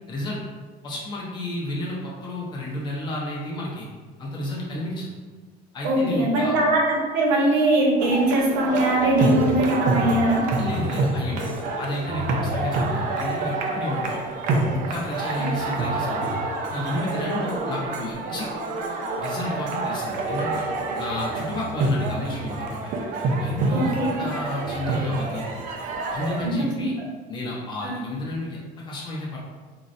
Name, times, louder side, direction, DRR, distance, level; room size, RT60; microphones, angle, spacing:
voice 1, 0.1-0.4 0.8-3.9 4.2-5.1 5.7-6.5 10.6-14.2 14.7-16.3 16.7-18.5 19.2-20.6 21.0-22.9 23.4-25.5 26.1-27.0 27.3-29.4, left 1 dB, 25° left, -5 dB, 0.7 m, -31 dB
voice 2, 5.8-10.4 15.4-15.5 23.7-24.1 26.4-26.6 27.8-27.9, right 1 dB, 85° right, -2 dB, 0.8 m, -21 dB
sound 1, 8.0-26.5, right 2 dB, 50° right, 0.4 m, -27 dB
3.8 x 2.1 x 2.5 m, 1.4 s
cardioid pair, 175°, 17 cm